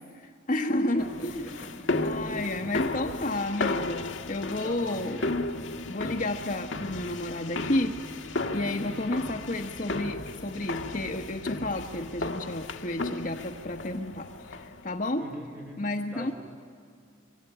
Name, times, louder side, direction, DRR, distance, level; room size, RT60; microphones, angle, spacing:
voice 1, 0.1-1.5 2.0-5.2 5.9-7.9 8.5-15.2 15.8-16.3, left 1 dB, 40° left, 5 dB, 1.1 m, -31 dB
voice 2, 0.9-1.9 2.5-2.8 4.6-5.4 8.6-9.1 15.1-16.3, equal, 5° right, 0 dB, 3.9 m, -42 dB
sound 1, 1.0-14.9, left 2 dB, 60° left, 1.4 m, -34 dB
24.5 x 24.0 x 10.0 m, 2.2 s
head